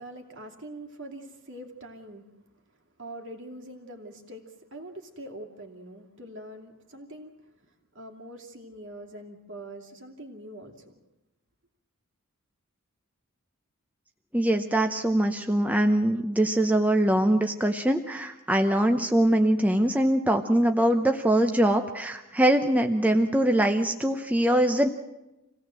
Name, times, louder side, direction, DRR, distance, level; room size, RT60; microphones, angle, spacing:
voice 1, 0.0-2.2 3.0-11.0, right 1 dB, 55° right, 2 dB, 2.6 m, -43 dB
voice 2, 14.3-24.9, right 1 dB, 5° right, 4 dB, 0.8 m, -23 dB
26.5 x 17.5 x 7.6 m, 0.99 s
head